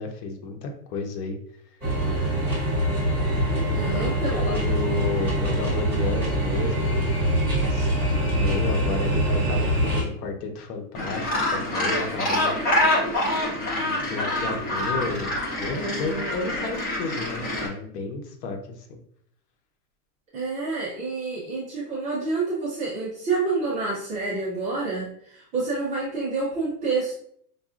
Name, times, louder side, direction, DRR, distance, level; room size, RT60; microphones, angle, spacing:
voice 1, 0.0-1.4 3.8-7.0 7.6-12.6 13.6-19.0, left 4 dB, 85° left, 4 dB, 1.0 m, -32 dB
sound 1, 1.8-10.0, right 1 dB, 5° left, 1.2 m, -24 dB
voice 2, 3.7-4.8 20.3-27.1, right 3 dB, 15° right, -7 dB, 0.4 m, -28 dB
Gull seagull, 10.9-17.7, left 1 dB, 20° left, 0.7 m, -26 dB
5.1 x 2.4 x 2.4 m, 0.65 s
supercardioid pair, 170°, 46 cm